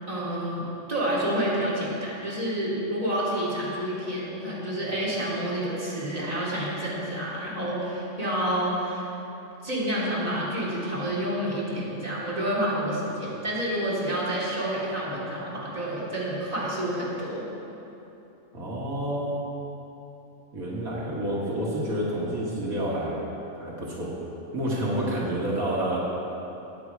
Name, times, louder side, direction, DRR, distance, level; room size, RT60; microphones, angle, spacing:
voice 1, 0.1-9.1 9.6-17.4, right 1 dB, 25° right, -8 dB, 3.0 m, -29 dB
voice 2, 18.5-19.4 20.5-23.2 23.6-24.1 24.5-26.0, right 1 dB, 85° right, -5 dB, 2.4 m, -29 dB
14.5 x 9.5 x 4.8 m, 3.0 s
omnidirectional pair, 1.5 m